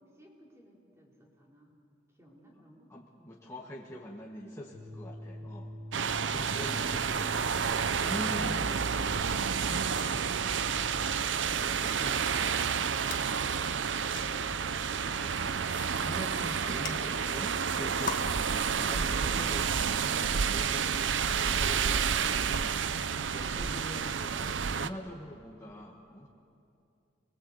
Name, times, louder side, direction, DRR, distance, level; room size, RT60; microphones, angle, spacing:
voice 1, 0.0-1.8 2.1-2.9 16.6-17.4, equal, 15° right, -2 dB, 3.9 m, -55 dB
voice 2, 2.9-5.7 6.3-7.1 8.0-8.8 9.7-9.9 15.1-20.1 20.5-22.1 22.5-22.8 23.3-26.3, left 1 dB, 15° left, -2 dB, 1.5 m, -43 dB
sound 1, 4.7-10.9, equal, 35° right, 2.9 m, -45 dB
sound 2, 5.9-24.9, right 6 dB, 85° right, 0.7 m, -30 dB
sound 3, 7.8-18.2, left 3 dB, 45° left, 1.8 m, -45 dB
27.0 x 21.0 x 8.2 m, 2.6 s
head